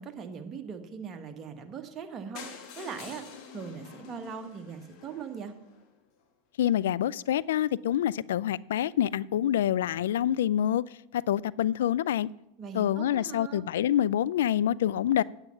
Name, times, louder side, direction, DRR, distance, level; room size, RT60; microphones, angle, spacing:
voice 1, 0.0-3.2 3.5-5.5 12.6-13.6, right 6 dB, 30° right, 1.4 m, -40 dB
sound 1, 2.4-6.2 6.9-7.0 7.2-7.3 7.6-7.7 7.9-8.0, left 6 dB, 50° left, 1.8 m, -47 dB
voice 2, 6.6-10.8 11.1-12.3 12.7-15.2, left 11 dB, 70° left, 0.3 m, -26 dB
8.9 x 8.9 x 5.7 m
hypercardioid pair, 95°, 0 cm